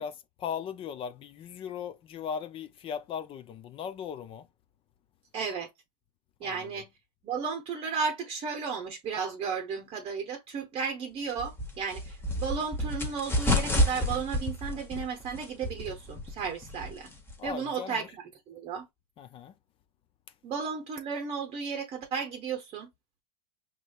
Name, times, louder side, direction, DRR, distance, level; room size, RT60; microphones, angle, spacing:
voice 1, 0.0-4.5 6.4-6.7 17.4-18.1 19.2-19.5, left 7 dB, 25° left, 0.4 m, -38 dB
voice 2, 5.3-5.7 6.4-6.9 7.2-17.1 17.4-18.9 20.4-22.9, right 6 dB, 25° right, 0.9 m, -34 dB
sound 1, 11.4-17.5, left 1 dB, 10° left, 0.9 m, -30 dB
5.0 x 3.0 x 2.3 m
hypercardioid pair, 115°, 21 cm